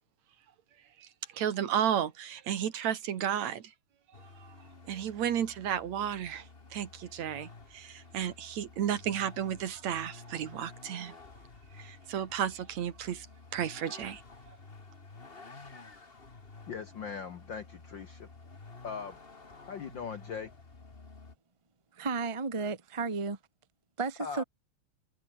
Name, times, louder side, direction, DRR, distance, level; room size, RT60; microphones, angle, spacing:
voice 1, 1.3-3.6 4.4-4.5 4.9-6.5 6.7-11.1 11.8-13.3 13.5-14.2, right 9 dB, 70° right, 2.9 m, -33 dB
Vehicle, 4.1-21.4, left 3 dB, 20° left, 1.9 m, -52 dB
voice 2, 16.7-18.3 18.8-19.2 19.7-20.5 24.2-24.4, left 6 dB, 55° left, 1.3 m, -40 dB
voice 3, 21.9-23.4 24.0-24.4, right 4 dB, 20° right, 0.9 m, -33 dB
omnidirectional pair, 3.3 m